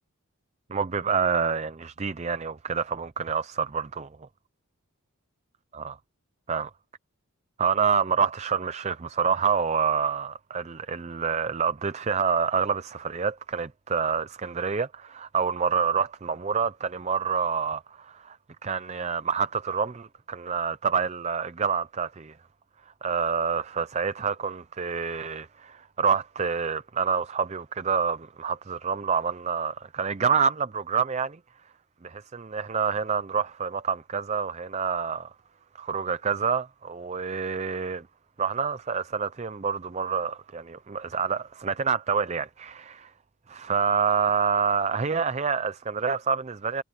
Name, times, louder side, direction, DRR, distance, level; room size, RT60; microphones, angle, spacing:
voice 1, 0.7-4.1 5.7-6.0 6.5-6.7 7.6-18.4 18.6-22.3 23.0-31.4 32.0-35.3 35.8-38.0 38.4-43.1 43.5-46.8, right 6 dB, 30° right, 0.5 m, -27 dB
head